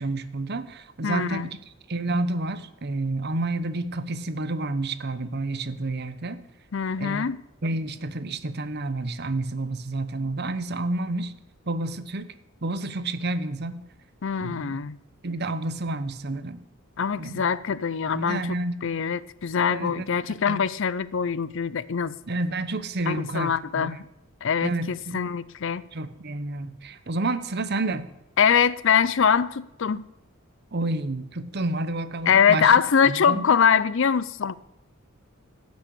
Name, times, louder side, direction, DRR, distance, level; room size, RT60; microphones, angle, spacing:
voice 1, 0.0-1.6 1.9-6.4 7.0-7.2 7.6-11.3 11.7-12.3 12.6-13.8 14.4-14.8 15.2-16.6 17.2-17.5 18.1-18.9 19.7-20.0 20.5-20.6 22.3-23.9 24.6-25.3 25.9-28.1 30.7-32.7 33.1-33.4, right 2 dB, 50° right, 1.0 m, -29 dB
voice 2, 1.0-1.5 6.7-7.4 14.2-15.0 17.0-18.5 18.8-22.1 23.1-24.0 24.4-25.8 28.4-30.1 32.3-34.6, left 7 dB, 65° left, 0.5 m, -23 dB
15.0 x 6.3 x 8.4 m
head